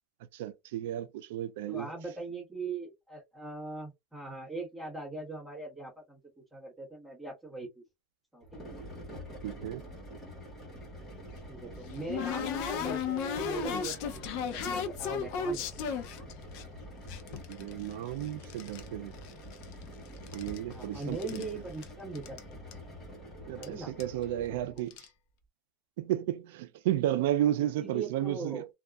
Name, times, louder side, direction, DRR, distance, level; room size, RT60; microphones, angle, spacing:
voice 1, 0.3-1.9 9.4-9.8 17.5-19.1 20.3-21.5 23.5-24.9 26.0-28.6, right 12 dB, 85° right, 0.4 m, -32 dB
voice 2, 1.7-7.8 8.3-8.6 11.5-15.7 20.7-22.6 23.6-24.4 24.7-24.9 27.8-28.7, right 3 dB, 5° right, 1.4 m, -41 dB
sound 1, 8.4-24.8, equal, 20° left, 1.4 m, -47 dB
sound 2, 11.2-16.6 17.1-18.9 19.1-19.9 20.2-21.5 21.8-21.9 22.1-22.4 22.7-22.8 23.6-23.7 24.0-24.2 24.8-25.1, left 6 dB, 50° left, 0.5 m, -35 dB
2.7 x 2.4 x 2.3 m
cardioid pair, 170°, 0 cm